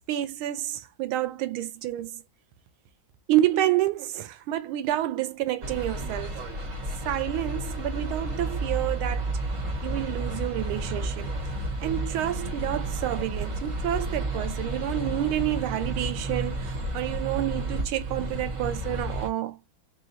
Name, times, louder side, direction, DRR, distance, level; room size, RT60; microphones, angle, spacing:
voice 1, 0.1-2.2 3.3-6.5 7.0-9.3 9.8-11.3 11.8-19.6, right 13 dB, 90° right, 1.5 m, -29 dB
sound 1, 5.6-19.3, right 2 dB, 45° right, 1.6 m, -31 dB
4.0 x 2.5 x 4.0 m
omnidirectional pair, 2.3 m